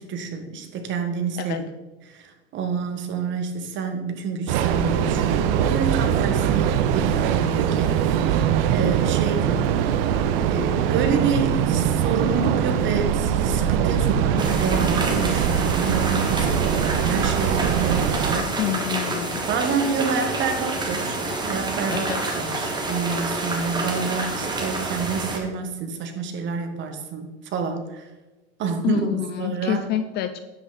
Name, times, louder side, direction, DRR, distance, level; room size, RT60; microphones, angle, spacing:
voice 1, 0.0-1.6 2.1-8.4 8.7-9.7 10.4-18.5 19.5-28.1 28.6-29.1 29.4-29.8, right 5 dB, 35° right, 6 dB, 1.5 m, -28 dB
Train, 4.5-18.4, right 9 dB, 55° right, 0.9 m, -22 dB
sound 1, 14.4-25.4, right 2 dB, 15° right, 1.5 m, -28 dB
voice 2, 18.6-19.5 21.9-22.2 28.8-30.4, left 11 dB, 30° left, 10 dB, 0.4 m, -27 dB
9.9 x 8.0 x 4.1 m, 1.2 s
supercardioid pair, 140°, 34 cm